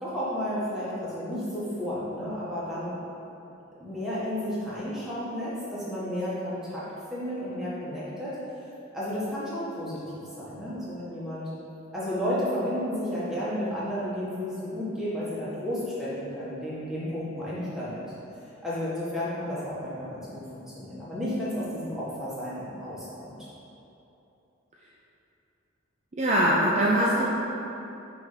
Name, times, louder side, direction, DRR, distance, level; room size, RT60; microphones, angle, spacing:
voice 1, 0.0-3.0 3.8-6.8 7.1-8.4 8.9-10.0 10.4-11.5 11.9-18.0 18.6-23.3, equal, ahead, -10 dB, 1.4 m, -32 dB
voice 2, 26.1-27.3, equal, 35° right, -5 dB, 0.5 m, -22 dB
5.8 x 3.4 x 5.6 m, 2.9 s
head